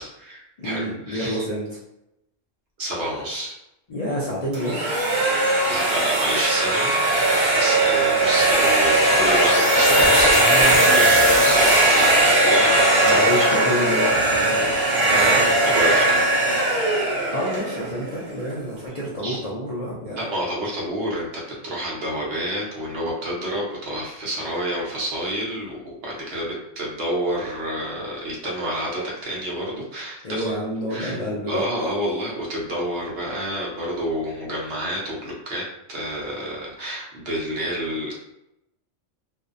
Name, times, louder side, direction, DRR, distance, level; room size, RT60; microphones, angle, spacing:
voice 1, 0.0-1.4 2.8-3.5 5.7-13.6 15.7-16.5 19.2-19.4 20.1-30.4 30.9-31.2 31.5-38.1, equal, 55° right, -4 dB, 0.8 m, -29 dB
voice 2, 0.6-1.8 3.9-4.9 13.0-15.8 17.3-20.2 30.2-31.6, equal, 75° left, -7 dB, 0.3 m, -28 dB
sound 1, 4.5-18.4, right 1 dB, 85° right, 1.2 m, -19 dB
sound 2, 8.5-12.8, right 1 dB, 5° right, 0.6 m, -27 dB
2.6 x 2.0 x 2.4 m, 0.87 s
omnidirectional pair, 1.3 m